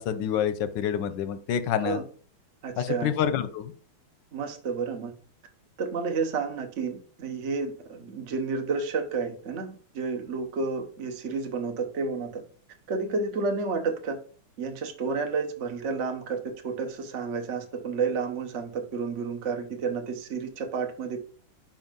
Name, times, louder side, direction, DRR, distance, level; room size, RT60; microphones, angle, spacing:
voice 1, 0.0-2.0 2.8-3.7, left 9 dB, 65° left, 12 dB, 1.2 m, -27 dB
voice 2, 2.6-3.1 4.3-5.1 5.8-12.4 12.9-14.2 14.6-21.2, right 4 dB, 45° right, 4 dB, 1.0 m, -31 dB
5.5 x 5.4 x 5.2 m, 0.43 s
omnidirectional pair, 2.4 m